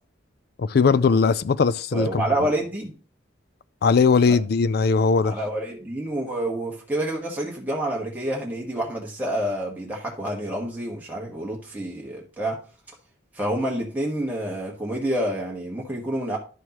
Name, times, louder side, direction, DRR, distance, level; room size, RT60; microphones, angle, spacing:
voice 1, 0.6-2.2 3.8-5.4, left 5 dB, 55° left, 0.4 m, -19 dB
voice 2, 1.9-2.9 4.3-4.4 5.2-12.6 13.3-16.4, right 1 dB, 10° right, 1.3 m, -28 dB
10.5 x 6.4 x 3.0 m
head